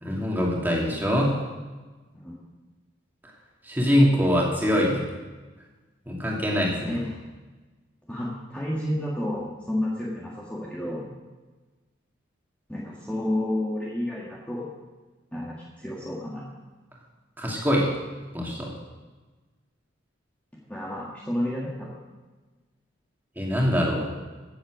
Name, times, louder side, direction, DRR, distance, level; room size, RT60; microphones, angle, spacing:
voice 1, 0.0-1.3 3.7-5.0 6.1-7.0 17.4-17.9 18.3-18.7 23.4-24.1, equal, 10° right, -3 dB, 2.6 m, -23 dB
voice 2, 6.9-7.2 8.1-11.1 12.7-14.7 15.3-16.5 20.7-22.0, left 1 dB, 5° left, -6 dB, 1.8 m, -30 dB
16.0 x 7.9 x 6.3 m, 1.3 s
head